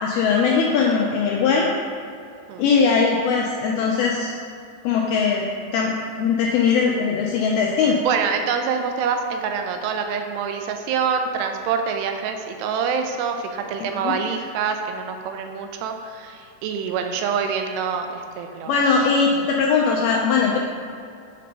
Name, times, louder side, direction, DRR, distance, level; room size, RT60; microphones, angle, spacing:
voice 1, 0.0-1.7 2.6-4.3 4.8-5.4 5.7-8.0 14.0-14.1 18.7-20.6, left 5 dB, 85° left, -2 dB, 2.2 m, -20 dB
voice 2, 8.0-18.7, right 6 dB, 85° right, 5 dB, 2.6 m, -26 dB
7.5 x 4.3 x 5.3 m, 2.5 s
omnidirectional pair, 4.9 m